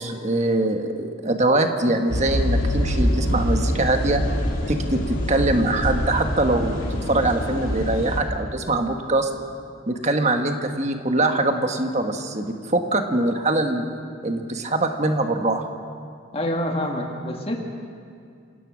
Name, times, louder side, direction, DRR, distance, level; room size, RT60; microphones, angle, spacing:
voice 1, 0.0-4.2 4.7-9.3 9.9-13.8 14.2-15.7, right 2 dB, 35° right, 5 dB, 1.4 m, -23 dB
sound 1, 2.1-8.2, equal, 85° left, 3.2 m, -25 dB
voice 2, 16.3-17.6, left 1 dB, 30° left, 2 dB, 1.7 m, -26 dB
28.0 x 17.0 x 6.2 m, 2.4 s
head